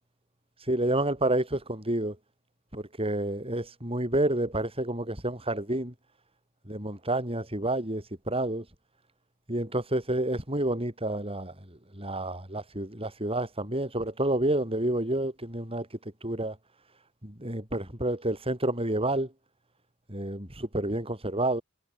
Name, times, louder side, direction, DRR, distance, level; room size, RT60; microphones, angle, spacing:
voice 1, 0.7-2.2 2.7-5.9 6.7-8.7 9.5-15.9 16.2-16.6 17.2-19.3 20.1-21.6, right 1 dB, 25° right, 7.6 m, -29 dB
head